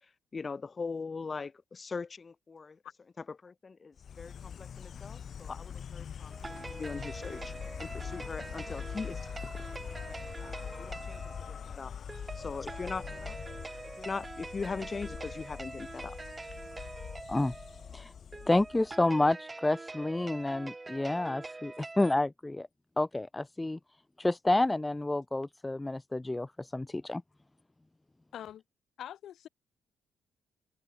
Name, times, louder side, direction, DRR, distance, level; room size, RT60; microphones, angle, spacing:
voice 1, 0.3-2.8 3.4-7.5 7.8-9.8 10.1-10.2 10.8-11.2 11.5-11.9 12.3-13.4 14.0-16.2, left 4 dB, 35° left, 3.3 m, -40 dB
Insect, 4.0-19.1, left 8 dB, 55° left, 1.2 m, -43 dB
sound 1, 6.3-22.1, right 2 dB, 20° right, 4.5 m, -45 dB
voice 2, 18.5-22.7 23.0-23.8 24.2-27.2, left 2 dB, 15° left, 0.4 m, -29 dB
voice 3, 28.3-28.6 29.0-29.5, left 11 dB, 70° left, 1.3 m, -44 dB
cardioid pair, 90°, 0 cm